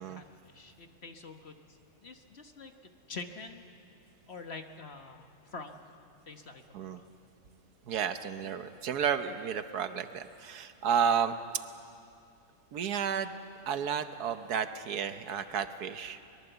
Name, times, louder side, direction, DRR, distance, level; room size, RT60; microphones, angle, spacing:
voice 1, 0.0-3.6 4.3-5.9 6.3-7.1, left 4 dB, 45° left, 6 dB, 1.3 m, -46 dB
voice 2, 7.9-11.4 12.7-13.3 13.7-16.2, right 7 dB, 70° right, 10 dB, 1.4 m, -32 dB
23.0 x 22.0 x 8.0 m, 2.5 s
omnidirectional pair, 1.7 m